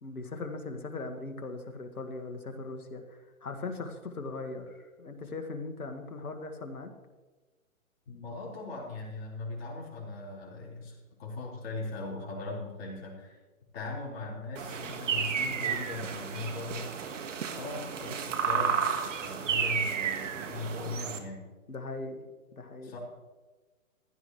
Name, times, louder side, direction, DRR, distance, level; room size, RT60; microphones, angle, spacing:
voice 1, 0.0-6.9 21.7-22.2 22.6-22.9, left 3 dB, 85° left, 6 dB, 1.9 m, -39 dB
voice 2, 8.1-13.4 13.7-16.9 17.6-18.9 19.2-21.5 22.8-23.0, left 3 dB, 45° left, -3 dB, 4.4 m, -39 dB
sound 1, 14.6-21.2, right 7 dB, 60° right, 1.7 m, -32 dB
15.0 x 12.5 x 3.2 m, 1.2 s
hypercardioid pair, 135°, 43 cm